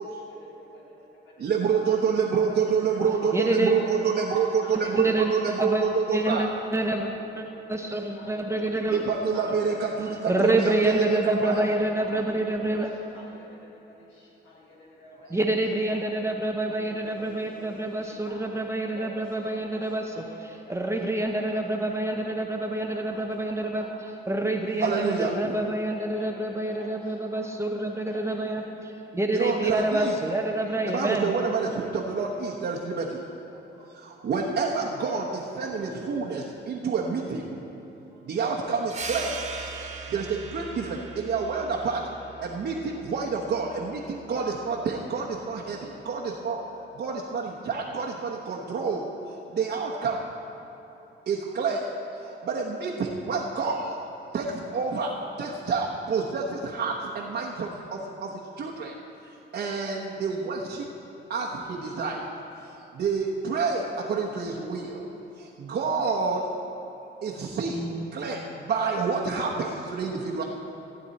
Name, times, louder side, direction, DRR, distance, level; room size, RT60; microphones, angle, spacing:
voice 1, 0.0-2.0 2.5-5.6 5.9-6.7 7.0-9.0 9.3-12.2 12.7-24.0 24.4-25.5 25.8-27.5 28.1-28.8 29.6-30.0 30.3-31.2, left 1 dB, 75° left, -5 dB, 3.0 m, -48 dB
voice 2, 1.4-6.4 8.9-11.7 24.8-25.3 29.3-30.2 30.9-33.2 33.5-37.6 38.2-39.4 40.1-42.0 42.4-46.6 46.9-50.2 51.3-51.8 52.1-54.0 54.3-55.1 55.4-58.9 59.2-60.8 61.3-62.3 62.6-66.4 67.2-67.8 68.1-70.4, right 5 dB, 60° right, -2 dB, 1.1 m, -28 dB
voice 3, 3.3-3.7 5.0-5.8 6.1-7.1 7.4-7.5 7.7-9.0 10.3-12.9 15.3-20.2 20.7-23.8 24.3-31.3 67.7-68.3, right 1 dB, 15° right, 2 dB, 0.8 m, -27 dB
sound 1, 38.9-44.1, right 5 dB, 35° right, 1.5 m, -39 dB
15.5 x 9.1 x 4.2 m, 3.0 s
cardioid pair, 90°, 20 cm